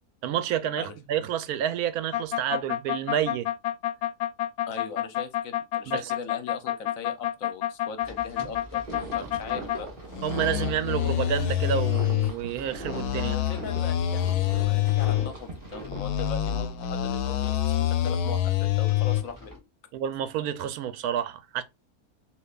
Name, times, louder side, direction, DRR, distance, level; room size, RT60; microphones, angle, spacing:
voice 1, 0.2-3.5 5.9-6.1 9.2-9.3 10.2-13.4 19.9-21.6, right 10 dB, 85° right, 1.1 m, -29 dB
sound 1, 2.1-9.8 10.1-12.3 12.8-15.3 15.8-19.2, left 12 dB, 90° left, 1.1 m, -27 dB
voice 2, 4.7-9.9 13.3-19.7, left 5 dB, 65° left, 1.1 m, -40 dB
sound 2, 8.0-19.6, equal, 15° right, 1.2 m, -46 dB
sound 3, 8.8-16.0, right 3 dB, 35° right, 2.0 m, -41 dB
6.6 x 2.8 x 2.3 m
omnidirectional pair, 1.6 m